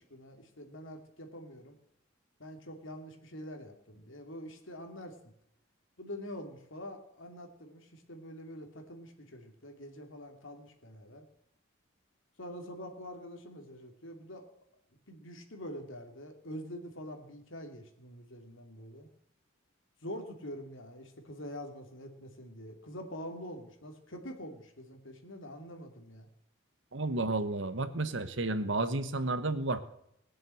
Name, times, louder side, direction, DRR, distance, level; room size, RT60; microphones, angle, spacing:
voice 1, 0.1-1.8 2.4-5.2 6.0-11.3 12.4-14.4 15.1-19.1 20.0-26.3, equal, 75° left, 4 dB, 2.7 m, -45 dB
voice 2, 26.9-29.8, right 2 dB, 65° right, 11 dB, 1.2 m, -31 dB
20.0 x 7.7 x 7.8 m, 0.76 s
head